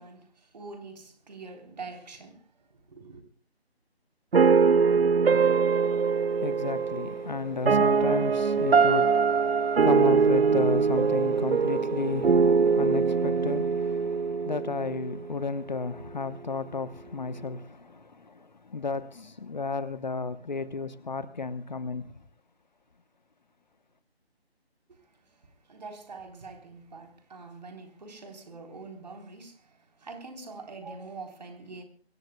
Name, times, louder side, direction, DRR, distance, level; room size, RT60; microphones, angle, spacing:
voice 1, 0.0-3.2 24.9-31.8, right 3 dB, 40° right, 3.7 m, -45 dB
sound 1, 4.3-15.4, right 5 dB, 70° right, 0.7 m, -23 dB
voice 2, 5.7-22.1, left 4 dB, 45° left, 1.0 m, -33 dB
24.0 x 18.0 x 2.3 m
figure-of-eight pair, 155°, 32 cm